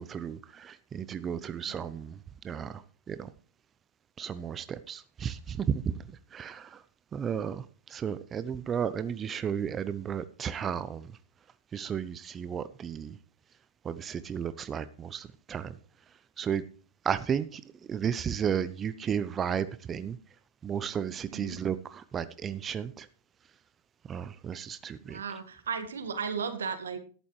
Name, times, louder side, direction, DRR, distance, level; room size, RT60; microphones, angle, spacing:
voice 1, 0.0-2.2 2.4-2.8 3.1-3.3 4.2-6.0 6.3-6.8 7.1-11.2 11.7-13.2 13.8-15.8 16.4-16.6 17.0-17.6 17.9-20.2 20.6-23.1 24.1-25.2, right 8 dB, 25° right, 14 dB, 0.7 m, -33 dB
voice 2, 25.1-27.0, right 6 dB, 80° right, 10 dB, 1.7 m, -35 dB
13.5 x 11.0 x 3.2 m, 0.41 s
hypercardioid pair, 100°, 0 cm